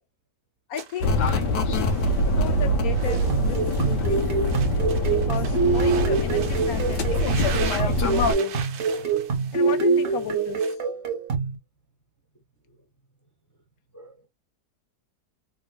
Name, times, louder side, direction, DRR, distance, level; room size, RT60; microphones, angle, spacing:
voice 1, 0.7-1.1 1.8-1.9 2.3-4.5 5.1-8.5 9.5-10.6, left 9 dB, 65° left, 1.1 m, -35 dB
sound 1, 0.8-10.8, right 7 dB, 90° right, 1.4 m, -40 dB
sound 2, 1.0-8.3, left 1 dB, 85° left, 1.3 m, -24 dB
sound 3, 3.1-11.6, right 4 dB, 55° right, 1.1 m, -25 dB
voice 2, 8.1-9.8 10.2-10.3 12.6-12.9 13.9-14.3, right 3 dB, 15° left, 0.8 m, -51 dB
3.8 x 2.8 x 2.2 m
omnidirectional pair, 1.8 m